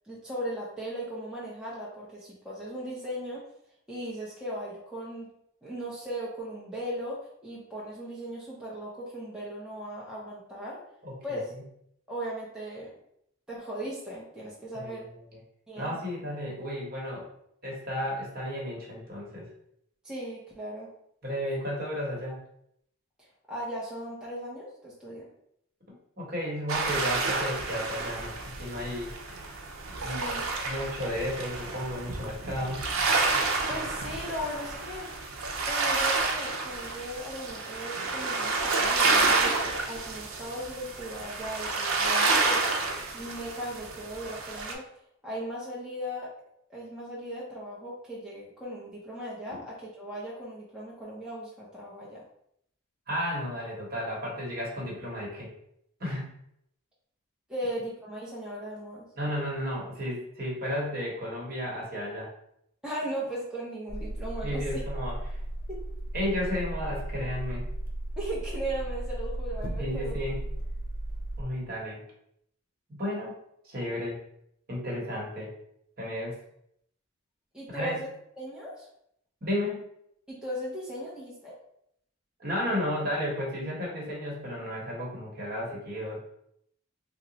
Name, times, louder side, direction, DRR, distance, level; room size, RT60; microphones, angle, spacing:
voice 1, 0.0-3.5 3.9-5.3 5.6-10.8 11.2-11.5 12.1-12.9 13.5-15.1 15.7-16.0 20.0-20.9 23.2-25.3 30.0-30.4 33.7-35.3 35.7-42.7 43.1-44.9 45.2-46.3 46.7-52.2 57.5-59.1 62.8-64.8 65.7-65.8 68.2-70.2 77.5-78.1 78.4-78.9 80.3-81.6, right 1 dB, 5° right, -7 dB, 0.5 m, -37 dB
voice 2, 11.0-11.4 14.8-14.9 15.8-17.3 17.6-19.5 21.2-22.4 26.2-29.1 30.0-30.3 30.6-32.8 53.1-55.5 56.0-56.3 59.2-62.3 64.4-65.4 66.1-67.7 69.8-70.4 71.4-72.0 72.9-73.4 73.6-74.2 74.7-75.5 76.0-76.4 77.7-78.0 79.4-79.9 82.4-86.2, left 1 dB, 45° right, -3 dB, 1.0 m, -33 dB
sound 1, 26.7-44.7, right 3 dB, 85° right, 0.6 m, -29 dB
sound 2, 63.9-71.4, right 1 dB, 45° left, 0.5 m, -35 dB
2.9 x 2.1 x 3.8 m, 0.73 s
head